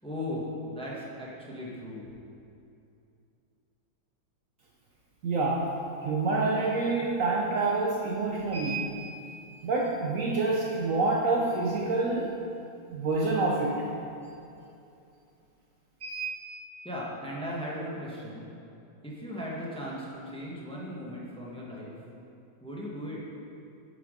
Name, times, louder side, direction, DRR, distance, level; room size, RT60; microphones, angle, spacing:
voice 1, 0.0-2.0 16.8-18.5 19.0-21.9 22.6-23.2, left 1 dB, 5° left, -5 dB, 0.9 m, -37 dB
voice 2, 5.2-5.7 6.0-9.0 9.6-12.3 12.9-13.8 16.0-16.3, right 3 dB, 90° right, -2 dB, 0.7 m, -27 dB
8.0 x 5.6 x 5.1 m, 2.7 s
omnidirectional pair, 2.2 m